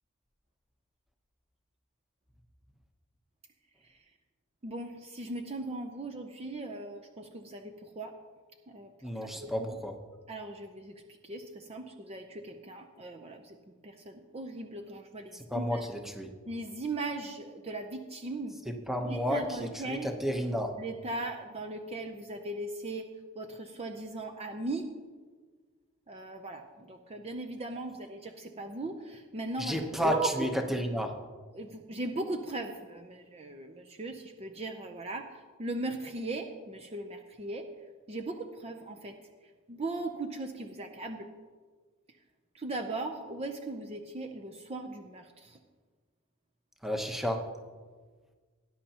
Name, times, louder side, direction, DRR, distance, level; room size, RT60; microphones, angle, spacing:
voice 1, 4.6-8.1 8.7-8.9 9.4-9.5 10.3-10.9 11.2-13.6 13.8-15.8 16.5-18.6 19.0-20.1 20.8-23.0 23.4-24.9 26.1-30.5 31.5-35.3 35.6-37.6 38.1-39.1 39.7-41.3 42.5-45.6, right 2 dB, 30° right, 4 dB, 0.6 m, -38 dB
voice 2, 9.0-9.9 15.5-16.3 18.6-20.7 29.6-31.1 46.8-47.4, equal, ahead, 4 dB, 0.9 m, -31 dB
18.5 x 10.0 x 2.9 m, 1.5 s
head